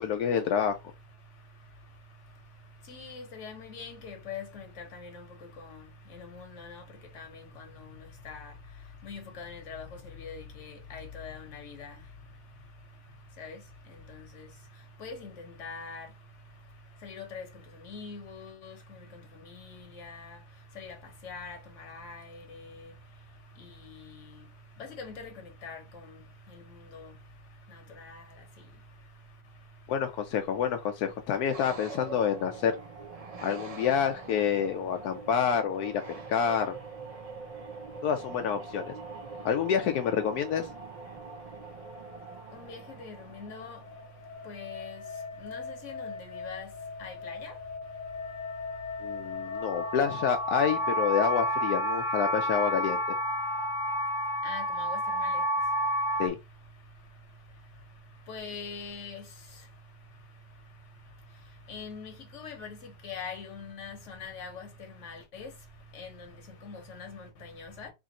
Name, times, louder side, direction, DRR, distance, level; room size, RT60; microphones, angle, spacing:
voice 1, 0.0-0.8 29.9-32.7 33.4-36.7 38.0-38.9 39.4-40.7 49.0-53.0 56.2-56.4, left 7 dB, 80° left, 1.1 m, -28 dB
voice 2, 2.9-5.2 5.6-5.7 6.1-6.8 7.1-7.3 7.6-7.7 8.2-8.5 9.0-9.9 10.2-11.9 13.4-13.6 14.4-14.5 15.0-16.1 17.0-17.5 17.9-18.7 20.0-20.3 20.8-20.9 21.2-21.6 21.9-22.6 24.8-25.3 25.6-25.8 26.9-27.1 28.0-28.2 42.5-43.8 44.5-45.0 45.4-46.7 47.0-47.5 54.4-55.3 58.3-59.2 61.7-64.7 65.0-65.5 65.9-66.1 66.6-67.9, left 5 dB, 55° left, 1.4 m, -42 dB
sound 1, 31.5-44.5, right 4 dB, 70° right, 0.3 m, -44 dB
sound 2, 43.5-56.3, equal, 30° left, 0.6 m, -32 dB
3.4 x 2.5 x 4.0 m
omnidirectional pair, 1.6 m